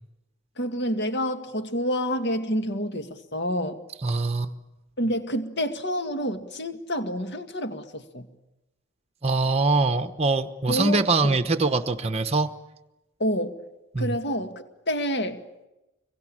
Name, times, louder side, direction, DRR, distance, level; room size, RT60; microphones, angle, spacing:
voice 1, 0.6-3.8 5.0-8.3 10.7-11.4 13.2-13.6 14.0-15.4, equal, 50° left, 7 dB, 2.0 m, -28 dB
voice 2, 4.0-4.5 9.2-12.5 13.9-14.2, right 3 dB, 30° right, 7 dB, 1.0 m, -23 dB
25.5 x 23.5 x 8.8 m, 0.98 s
head